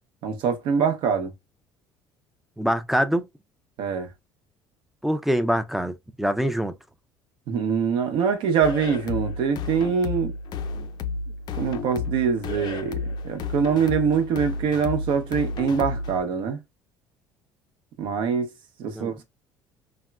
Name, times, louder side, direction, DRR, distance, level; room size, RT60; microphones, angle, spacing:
voice 1, 0.2-1.3 3.8-4.1 7.5-10.3 11.6-16.6 18.0-18.5 18.8-19.2, right 6 dB, 70° right, 0.8 m, -24 dB
voice 2, 2.6-3.3 5.0-6.7 19.0-19.1, equal, ahead, 0.4 m, -24 dB
sound 1, 8.6-16.2, left 4 dB, 55° left, 0.5 m, -32 dB
3.5 x 2.1 x 2.3 m
supercardioid pair, 100°, 9 cm